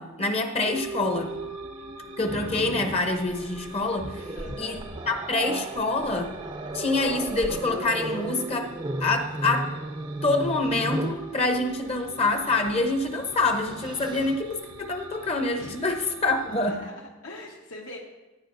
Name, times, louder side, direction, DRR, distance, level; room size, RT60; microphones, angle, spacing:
voice 1, 0.0-1.3 2.2-4.3 4.6-4.8 5.1-6.3 6.7-8.7 9.0-9.7 10.2-16.8, left 2 dB, 30° left, 5 dB, 0.8 m, -26 dB
sound 1, 0.6-16.8, right 3 dB, 85° right, 1.1 m, -43 dB
Growling, 2.2-11.3 12.6-12.8 13.2-14.4, right 1 dB, 20° right, 0.5 m, -35 dB
voice 2, 4.3-4.8 15.6-15.8 16.3-18.0, left 2 dB, 75° left, -3 dB, 1.3 m, -43 dB
15.5 x 10.0 x 2.6 m, 1.1 s
head